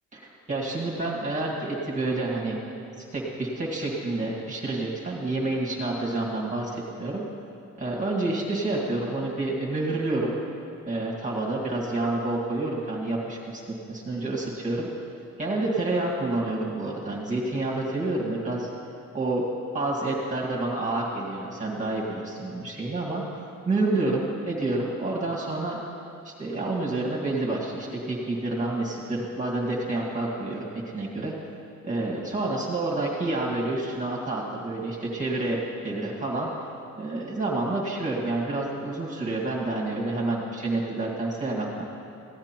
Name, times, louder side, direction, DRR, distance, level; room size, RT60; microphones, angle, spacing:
voice 1, 0.1-2.6 3.0-7.2 7.8-10.4 10.9-13.6 13.9-14.9 15.4-18.7 19.1-19.4 19.7-25.8 26.2-31.3 31.8-36.5 37.0-41.9, right 2 dB, 25° right, -4 dB, 1.9 m, -28 dB
15.5 x 8.7 x 4.5 m, 2.6 s
cardioid pair, 90°, 30 cm